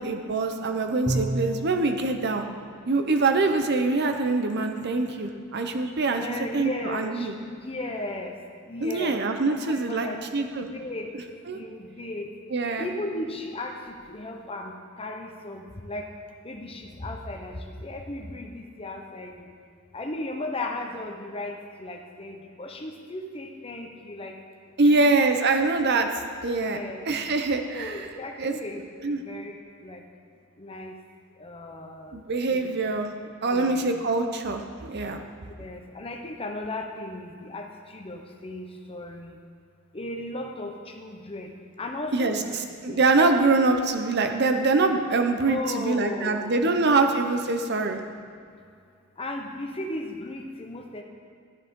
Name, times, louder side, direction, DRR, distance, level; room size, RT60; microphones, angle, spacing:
voice 1, 0.0-2.4 2.9-6.3 6.5-7.4 8.8-10.7 11.5-11.6 12.5-12.9 24.8-26.1 26.4-26.8 27.1-27.9 28.4-28.5 29.0-29.2 32.1-33.1 33.4-35.2 42.1-42.4 42.8-48.0, right 3 dB, 55° right, 6 dB, 0.8 m, -24 dB
Bowed string instrument, 1.1-1.9, right 2 dB, 20° right, 0.7 m, -28 dB
voice 2, 6.1-7.3 7.6-8.3 8.7-9.2 9.5-10.2 10.7-11.1 11.5-12.3 12.8-14.7 15.0-16.1 16.4-17.5 17.8-19.5 19.9-24.3 24.9-25.3 26.6-27.0 27.7-28.8 29.1-29.5 29.8-30.0 30.6-30.9 31.4-32.2 32.5-32.8 33.5-33.9 35.6-37.7 37.9-39.4 39.9-41.5 41.8-42.6 42.9-43.0 45.4-46.7 49.2-51.0, left 1 dB, 25° left, 3 dB, 0.8 m, -36 dB
12.0 x 10.5 x 3.7 m, 2.3 s
head